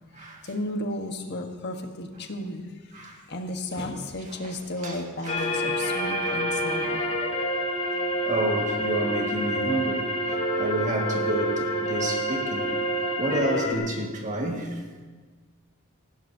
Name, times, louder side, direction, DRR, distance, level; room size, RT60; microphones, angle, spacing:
voice 1, 0.2-2.7 3.3-7.0, left 1 dB, 55° left, 4 dB, 1.3 m, -33 dB
voice 2, 4.8-5.7 6.0-6.5 6.9-7.1 8.3-12.7 13.2-14.8, right 1 dB, 35° right, 0 dB, 1.8 m, -30 dB
sound 1, 5.3-13.7, equal, 35° left, 2.1 m, -27 dB
19.0 x 16.0 x 2.8 m, 1.4 s
head